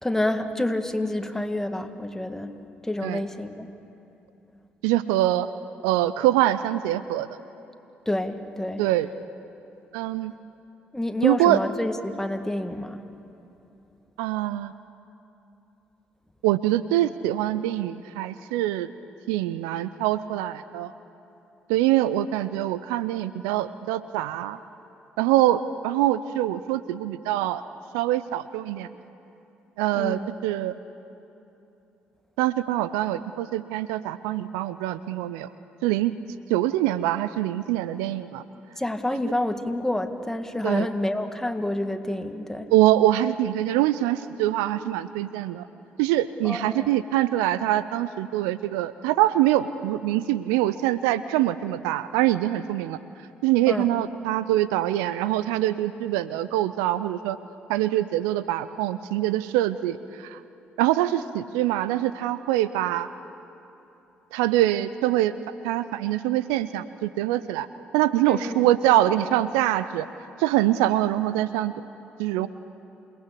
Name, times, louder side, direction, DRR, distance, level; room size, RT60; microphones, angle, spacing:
voice 1, 0.0-2.5 2.8-3.7 8.1-8.8 10.9-13.0 29.9-30.3 38.8-42.7 46.4-46.9 53.7-53.9 68.3-68.6, left 1 dB, 10° left, 7 dB, 1.8 m, -28 dB
voice 2, 4.8-5.5 5.8-7.3 8.8-9.1 9.9-10.3 11.2-11.6 14.2-14.7 16.4-18.9 19.3-20.9 21.7-24.6 25.2-27.6 27.9-28.9 29.8-30.7 32.4-35.5 35.8-36.1 36.5-38.4 40.6-40.9 42.7-45.7 46.0-53.0 53.4-57.4 57.7-60.4 60.8-63.1 64.3-65.3 65.6-67.7 67.9-70.1 70.4-71.7 72.2-72.5, right 14 dB, 80° right, 15 dB, 0.5 m, -24 dB
28.0 x 18.5 x 8.5 m, 2.9 s
hypercardioid pair, 45°, 5 cm